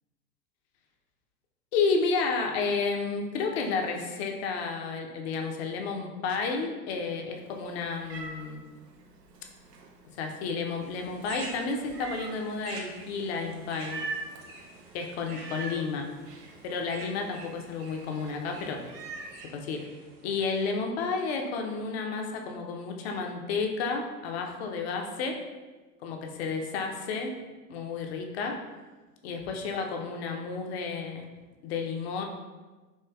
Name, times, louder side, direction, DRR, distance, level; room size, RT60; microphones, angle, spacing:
voice 1, 1.7-8.6 10.2-14.0 14.9-16.1 16.6-18.8 19.5-19.9 20.2-25.4 26.0-27.3 27.7-28.6 29.2-31.3 31.6-32.2, left 4 dB, 45° left, 3 dB, 0.6 m, -31 dB
Meow, 7.4-19.4, right 3 dB, 90° right, 0.6 m, -44 dB
sound 1, 10.8-20.7, right 3 dB, 40° right, 0.6 m, -48 dB
4.3 x 2.8 x 2.2 m, 1.2 s
figure-of-eight pair, 90°, 47 cm